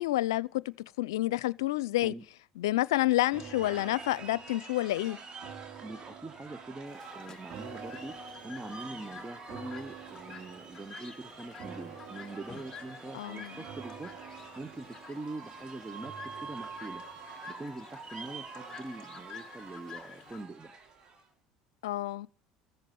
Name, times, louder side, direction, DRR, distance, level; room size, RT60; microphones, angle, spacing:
voice 1, 0.0-2.1 2.6-5.2 13.1-13.6 21.8-22.3, left 16 dB, 85° left, 0.6 m, -29 dB
sound 1, 3.2-21.3, right 4 dB, 40° right, 3.4 m, -47 dB
sound 2, 3.3-18.6 19.0-19.1, right 9 dB, 60° right, 2.8 m, -51 dB
voice 2, 5.8-8.2 8.4-14.1 14.6-17.0 17.5-20.7, right 2 dB, 15° right, 1.2 m, -43 dB
Chirp tweet, 6.9-20.4, left 7 dB, 30° left, 1.5 m, -51 dB
14.5 x 7.5 x 9.3 m
supercardioid pair, 85°, 2 cm